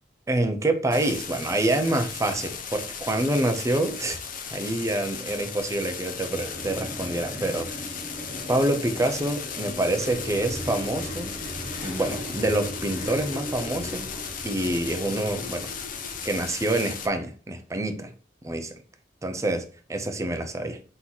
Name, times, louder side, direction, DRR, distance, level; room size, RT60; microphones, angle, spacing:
voice 1, 0.3-4.2 4.5-7.9 8.5-11.3 11.8-14.1 14.4-15.7 16.2-18.1 18.4-18.7 19.2-20.8, right 1 dB, 15° right, 6 dB, 0.5 m, -27 dB
sound 1, 0.9-17.1, left 6 dB, 50° left, 0.6 m, -36 dB
sound 2, 6.3-16.6, equal, 35° left, 1.2 m, -38 dB
4.0 x 2.9 x 3.9 m, 0.39 s
head